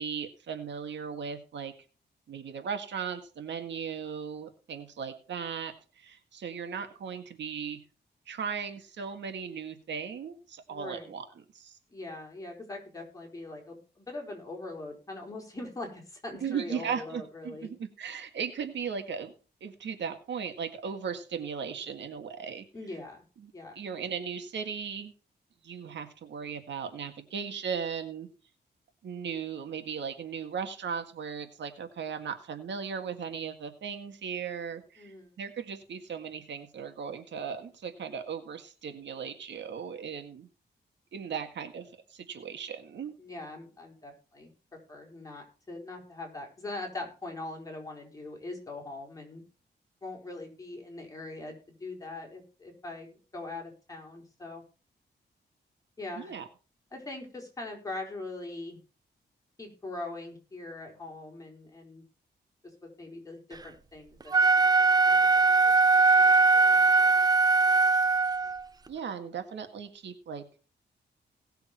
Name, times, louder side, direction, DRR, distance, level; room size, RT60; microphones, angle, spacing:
voice 1, 0.0-1.7 2.3-7.8 8.3-11.2 11.5-11.8 16.4-19.3 19.6-22.6 23.4-25.1 25.6-28.3 29.0-40.5 41.1-43.2 56.2-56.5 68.9-70.4, right 7 dB, 90° right, 7 dB, 1.8 m, -37 dB
voice 2, 10.7-11.1 11.9-17.7 22.7-23.2 23.5-23.8 35.0-35.3 43.2-44.5 44.9-49.4 50.0-54.6 56.0-56.3 56.9-58.8 59.6-62.0 62.8-64.3 65.0-65.7 66.1-67.1, left 2 dB, 20° left, 0 dB, 4.7 m, -42 dB
Wind instrument woodwind instrument, 64.2-68.6, right 4 dB, 20° right, 0.6 m, -21 dB
18.0 x 6.9 x 4.4 m, 0.36 s
wide cardioid pair, 145°, 18 cm